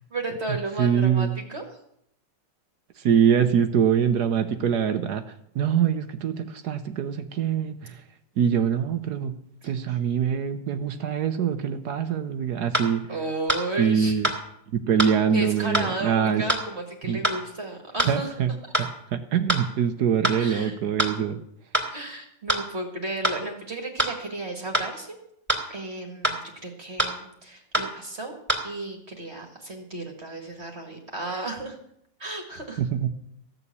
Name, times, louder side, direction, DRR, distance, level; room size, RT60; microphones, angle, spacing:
voice 1, 0.1-1.6 9.6-10.0 13.1-14.1 15.3-18.3 20.4-20.8 21.9-25.2 25.7-28.3 28.6-31.8 32.2-32.8, right 2 dB, 35° right, 2 dB, 2.0 m, -33 dB
voice 2, 0.8-1.3 3.0-5.2 5.5-8.0 8.4-9.3 9.6-13.1 13.8-14.3 14.7-16.4 17.1-17.2 18.1-18.5 19.1-21.4 32.8-33.1, right 8 dB, 65° right, 9 dB, 1.3 m, -24 dB
sound 1, 12.1-12.2 12.7-12.9 13.5-13.6 14.2-14.4 15.0-15.1 15.7-15.9 16.5-16.6 17.2-17.4 18.0-18.1 18.7-18.9 19.5-19.6 20.2-20.4 21.0-21.1 21.7-21.9 22.5-22.6 23.2-23.4 24.0-24.1 24.7-24.9 25.5-25.6 26.2-26.4 27.0-27.1 27.7-27.9 28.5-28.6, right 1 dB, 5° right, 2.8 m, -24 dB
15.0 x 7.0 x 8.5 m, 0.74 s
omnidirectional pair, 2.0 m